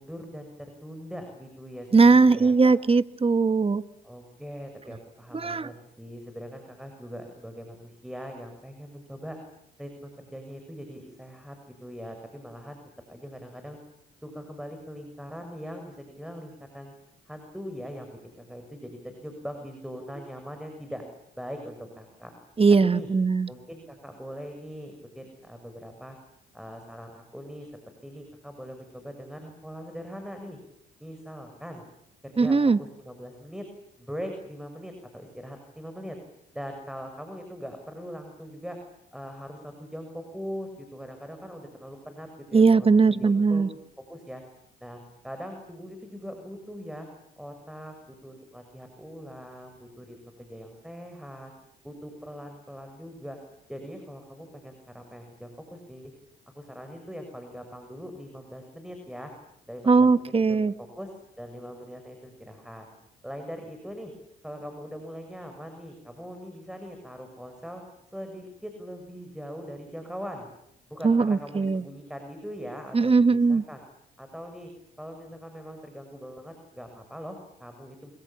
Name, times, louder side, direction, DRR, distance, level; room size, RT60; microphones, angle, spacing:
voice 1, 0.0-2.7 4.0-9.4 9.8-12.8 13.1-13.8 14.2-16.9 17.3-21.0 21.4-22.3 22.8-23.1 23.5-26.2 26.5-27.7 28.0-30.6 31.0-31.8 32.2-33.6 34.0-36.2 36.5-38.8 39.1-43.6 44.1-44.4 44.8-47.1 47.4-51.5 51.8-53.4 53.7-56.1 56.5-59.3 59.7-61.1 61.4-62.9 63.2-64.1 64.4-67.8 68.1-70.5 70.9-73.8 74.2-74.7 75.0-78.1, equal, 5° right, 5 dB, 6.6 m, -41 dB
voice 2, 1.9-3.8 5.3-5.7 22.6-23.5 32.4-32.8 42.5-43.7 59.9-60.7 71.0-71.8 72.9-73.6, right 4 dB, 30° right, 14 dB, 1.3 m, -20 dB
26.5 x 25.0 x 7.4 m, 0.76 s
supercardioid pair, 55°, 20 cm